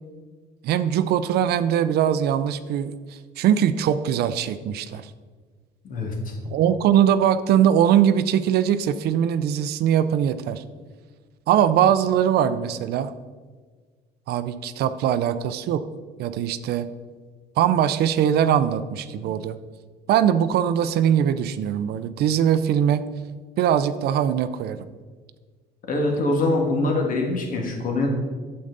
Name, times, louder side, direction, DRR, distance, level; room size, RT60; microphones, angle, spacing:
voice 1, 0.6-3.0 3.4-5.1 6.5-10.6 11.5-13.1 14.3-15.8 16.2-16.9 17.6-19.6 20.1-23.0 23.6-24.9, right 9 dB, 70° right, 12 dB, 0.5 m, -21 dB
voice 2, 5.8-6.3 25.9-28.1, left 2 dB, 55° left, 1 dB, 1.9 m, -24 dB
8.6 x 7.8 x 4.0 m, 1.5 s
cardioid pair, 110°, 17 cm